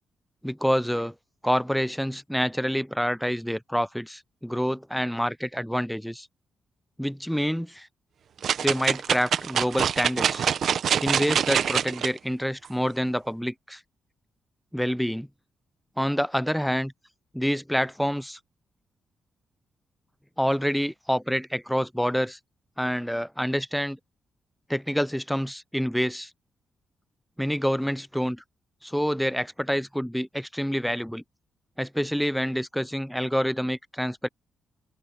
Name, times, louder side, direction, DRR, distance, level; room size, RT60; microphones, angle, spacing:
voice 1, 0.4-1.1 1.4-6.3 7.0-7.9 8.6-10.5 11.0-13.8 14.7-15.3 16.0-16.9 17.3-18.4 20.4-22.4 22.8-24.0 24.7-26.3 27.4-28.4 28.8-31.2 31.8-34.3, equal, ahead, 0.5 m, -27 dB
sound 1, 8.4-12.1 12.7-12.8, right 8 dB, 70° right, 1.1 m, -25 dB
supercardioid pair, 55°, 0 cm